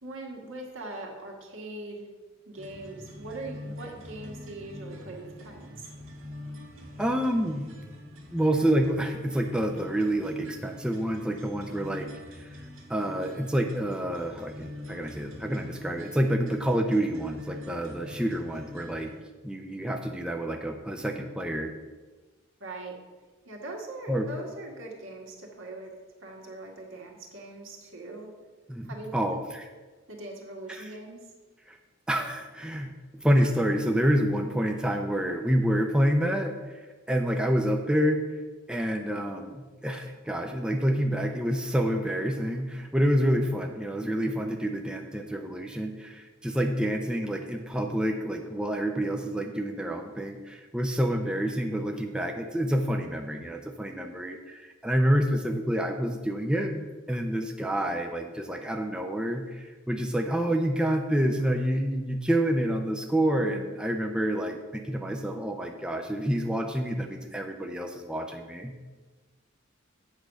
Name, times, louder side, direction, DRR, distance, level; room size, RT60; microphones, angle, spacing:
voice 1, 0.0-2.1 2.4-5.9 22.6-22.9 23.4-25.9 26.2-28.3 28.8-29.4 30.1-31.2, right 2 dB, 70° right, 0 dB, 1.7 m, -41 dB
sound 1, 2.6-19.2, left 1 dB, 90° right, 1.9 m, -44 dB
voice 2, 7.0-7.7 8.3-12.6 12.9-19.1 19.4-21.7 24.1-24.3 28.7-29.6 30.7-30.9 31.7-31.8 32.1-36.5 37.1-38.2 38.7-68.7, equal, 5° right, 3 dB, 0.5 m, -28 dB
8.3 x 4.8 x 6.5 m, 1.3 s
head